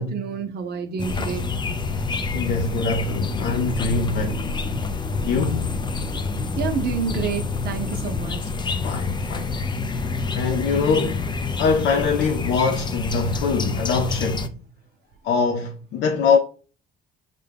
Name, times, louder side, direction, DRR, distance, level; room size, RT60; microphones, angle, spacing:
voice 1, 0.0-1.5 6.6-8.5, right 6 dB, 60° right, 0.7 m, -28 dB
sound 1, 1.0-14.5, left 4 dB, 25° left, 0.5 m, -27 dB
voice 2, 2.3-4.5 5.2-5.8 8.8-9.6 10.3-11.3 11.6-14.5 15.2-16.4, left 4 dB, 75° left, 0.5 m, -23 dB
sound 2, 3.3-8.4, right 2 dB, 5° right, 0.9 m, -42 dB
6.6 x 2.2 x 3.4 m
cardioid pair, 95°, 18 cm